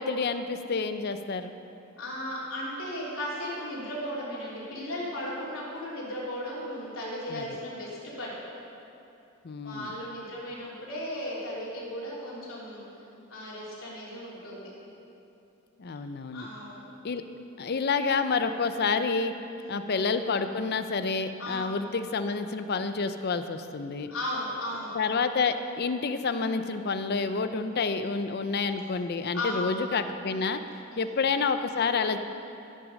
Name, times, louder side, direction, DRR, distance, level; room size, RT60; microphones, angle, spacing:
voice 1, 0.0-1.5 7.3-7.4 9.4-9.9 15.8-16.5 17.0-17.2 17.6-19.3 19.7-24.1 24.9-30.6 31.0-32.2, left 4 dB, 50° left, 9 dB, 0.5 m, -29 dB
voice 2, 2.0-8.4 9.6-12.8 13.3-14.7 16.3-16.8 19.6-19.9 21.4-21.7 24.1-24.9 29.3-29.6 30.9-31.2, left 1 dB, 90° left, -6 dB, 3.1 m, -36 dB
14.5 x 6.2 x 6.4 m, 2.8 s
head